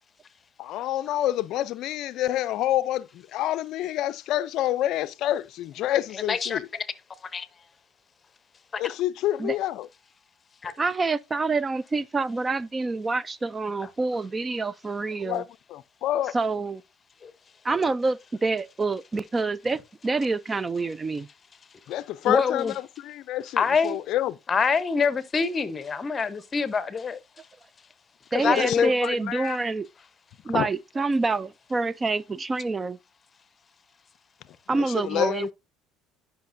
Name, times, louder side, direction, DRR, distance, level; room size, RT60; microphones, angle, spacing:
voice 1, 0.6-6.7 8.8-9.9 15.2-16.4 21.9-24.4 28.4-29.6 30.5-30.7 34.7-35.5, left 13 dB, 65° left, 0.4 m, -28 dB
voice 2, 6.3-6.6 7.3-7.5 8.7-8.8 10.6-10.7 17.2-17.3 22.2-22.7 23.6-24.0 24.5-27.2 28.3-28.9, left 5 dB, 30° left, 0.8 m, -24 dB
voice 3, 10.8-15.4 16.3-16.8 17.6-21.3 28.3-29.9 30.4-33.0 34.7-35.5, right 3 dB, 20° right, 0.4 m, -27 dB
10.5 x 5.7 x 2.6 m
supercardioid pair, 105°, 0 cm